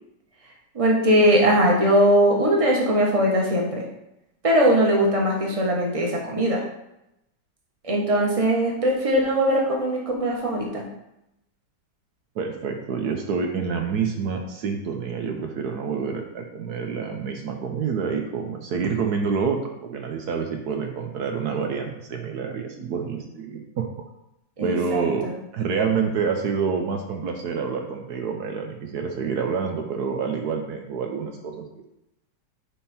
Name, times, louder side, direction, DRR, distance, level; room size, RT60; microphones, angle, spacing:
voice 1, 0.7-3.8 4.4-6.6 7.8-10.8 24.6-25.3, equal, 20° right, -1 dB, 1.3 m, -20 dB
voice 2, 12.4-23.9 24.6-25.3 25.5-31.7, right 5 dB, 70° right, 3 dB, 1.3 m, -27 dB
9.9 x 3.7 x 4.3 m, 0.86 s
omnidirectional pair, 1.8 m